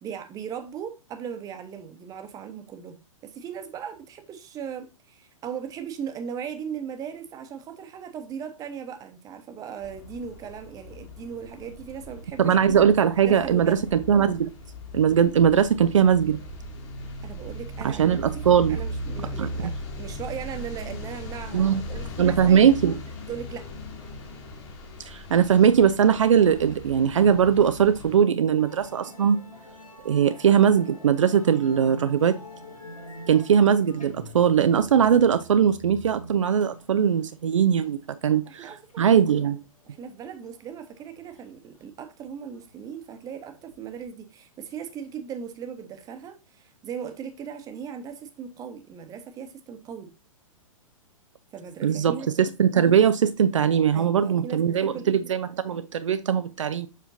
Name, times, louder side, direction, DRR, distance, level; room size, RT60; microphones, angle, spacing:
voice 1, 0.0-3.0 3.2-12.5 13.2-13.9 17.2-18.4 18.7-22.8 23.3-23.7 38.3-39.3 39.8-50.1 51.5-52.3 53.9-55.1, right 7 dB, 20° right, 1.0 m, -38 dB
sound 1, 9.8-28.2, equal, 45° left, 2.4 m, -38 dB
voice 2, 12.4-14.5 14.9-16.4 17.8-18.8 19.4-19.7 21.5-21.8 22.2-23.0 25.1-29.4 30.0-32.4 33.3-38.7 39.0-39.6 51.8-56.9, right 8 dB, 65° right, 0.5 m, -20 dB
Musical instrument, 28.6-44.1, right 1 dB, 80° left, 1.7 m, -46 dB
7.2 x 5.6 x 2.7 m
figure-of-eight pair, 110°, 18 cm